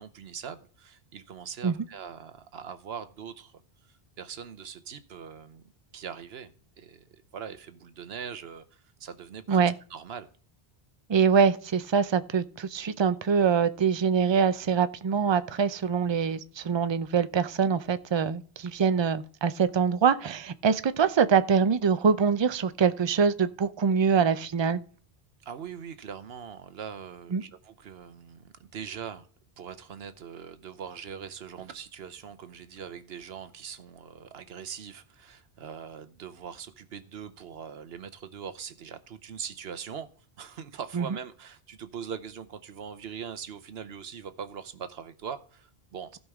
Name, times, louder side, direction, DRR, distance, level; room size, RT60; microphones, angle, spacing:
voice 1, 0.0-3.5 3.9-5.6 5.9-6.5 6.8-9.6 9.9-10.3 25.4-29.3 29.6-40.1 40.4-46.2, right 7 dB, 70° right, 1.0 m, -41 dB
voice 2, 11.1-24.8 27.3-27.4 40.9-41.1, right 6 dB, 40° right, 0.4 m, -24 dB
15.5 x 5.5 x 3.5 m
omnidirectional pair, 1.1 m